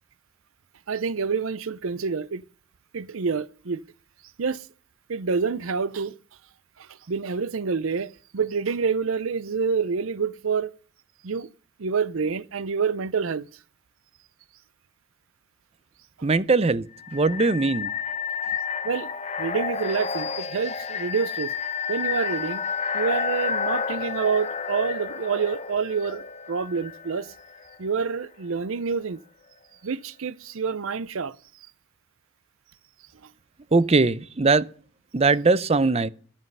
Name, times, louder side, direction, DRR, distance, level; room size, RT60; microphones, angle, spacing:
voice 1, 0.9-2.4 2.9-3.8 4.4-4.7 5.1-6.1 6.8-10.7 11.2-11.5 11.8-13.5 18.8-19.1 19.4-21.5 21.9-22.6 22.9-27.3 27.8-29.2 29.8-31.4, right 5 dB, 65° right, 0.6 m, -27 dB
voice 2, 16.2-17.9 33.7-34.7 35.1-36.1, right 3 dB, 30° right, 0.5 m, -21 dB
sound 1, 17.0-27.7, left 6 dB, 30° left, 0.8 m, -30 dB
13.0 x 11.0 x 5.5 m
head